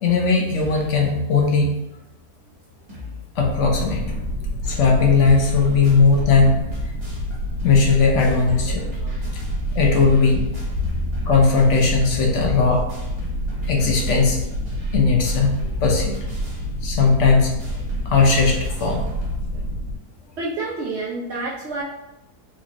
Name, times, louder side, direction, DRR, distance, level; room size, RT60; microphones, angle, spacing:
voice 1, 0.0-1.7 3.4-4.1 4.6-6.5 7.6-8.9 9.8-10.4 11.3-12.8 13.7-14.4 14.9-15.5 15.8-16.2 16.8-17.5 18.1-19.0, left 4 dB, 60° left, 0 dB, 0.8 m, -18 dB
sound 1, 0.5-1.0 1.4-1.5 1.7-1.8 2.3-2.4 2.6-3.2 3.5-19.4, left 4 dB, 25° right, 0.7 m, -38 dB
sound 2, 3.4-19.9, equal, 65° right, 1.3 m, -28 dB
voice 2, 20.4-21.8, right 3 dB, 85° right, -4 dB, 0.5 m, -29 dB
4.1 x 2.4 x 2.9 m, 0.93 s
omnidirectional pair, 1.7 m